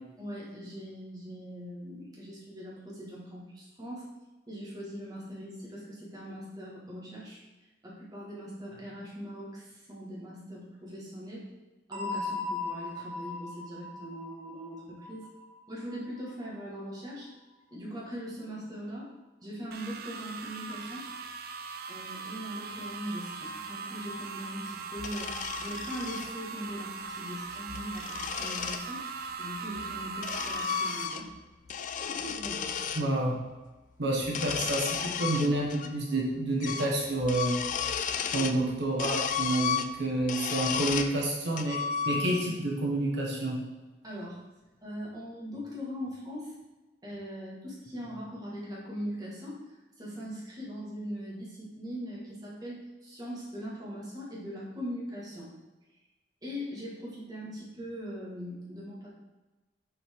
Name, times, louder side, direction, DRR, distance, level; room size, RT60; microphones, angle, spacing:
voice 1, 0.2-4.1 4.5-7.4 7.8-11.4 11.9-15.3 15.7-17.3 17.7-19.1 19.4-21.1 21.9-29.1 29.4-31.3 32.2-32.8 44.0-44.4 44.8-46.5 47.0-55.5 56.4-59.1, equal, 20° right, -6 dB, 1.8 m, -41 dB
sound 1, 11.9-16.5, left 3 dB, 40° right, 1.3 m, -38 dB
sound 2, 19.7-31.1, right 4 dB, 55° right, 0.5 m, -40 dB
sound 3, 25.0-26.3 27.5-28.9 29.8-31.4 31.7-33.1 34.2-35.9 36.2-36.3 36.6-36.9 37.2-38.6 39.0-41.2 41.6-42.5, left 7 dB, 45° left, 0.3 m, -33 dB
voice 2, 33.0-33.4 34.0-37.6 38.3-41.8 42.0-43.6, right 1 dB, 70° right, -2 dB, 1.1 m, -29 dB
7.1 x 4.5 x 3.7 m, 1.2 s
head